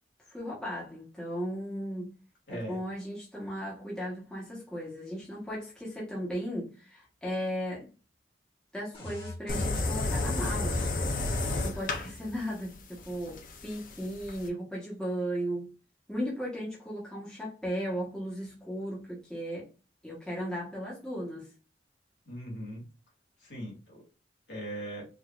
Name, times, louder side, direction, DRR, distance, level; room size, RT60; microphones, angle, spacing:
voice 1, 0.3-2.1 2.5-7.9 8.7-10.8 11.6-15.7 16.1-19.7 20.0-21.5, equal, 5° left, 1.3 m, -36 dB
voice 2, 2.5-2.8 22.3-22.8 23.4-24.0 24.5-25.1, right 1 dB, 65° left, 2.3 m, -39 dB
sound 1, 8.9-11.8, left 1 dB, 30° left, 1.7 m, -42 dB
sound 2, 9.5-14.5, left 2 dB, 45° left, 0.7 m, -32 dB
5.1 x 2.8 x 2.4 m
head